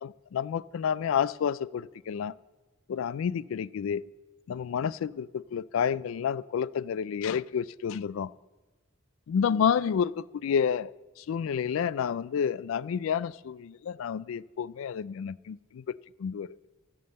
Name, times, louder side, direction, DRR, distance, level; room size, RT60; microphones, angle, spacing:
voice 1, 0.0-2.3 2.9-4.0 4.5-8.3 9.3-10.9 11.2-15.8 16.2-16.6, left 7 dB, 75° left, 19 dB, 0.3 m, -30 dB
15.0 x 5.4 x 7.7 m, 1.2 s
head